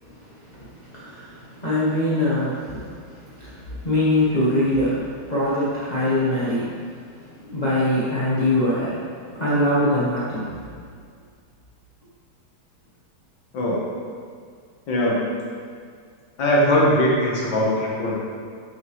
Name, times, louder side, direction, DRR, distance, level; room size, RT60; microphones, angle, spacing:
voice 1, 0.0-10.5, left 1 dB, 30° left, -10 dB, 0.9 m, -24 dB
voice 2, 13.5-13.9 14.9-15.3 16.4-18.2, equal, 70° left, -5 dB, 2.0 m, -20 dB
7.0 x 6.0 x 3.2 m, 2.1 s
omnidirectional pair, 2.2 m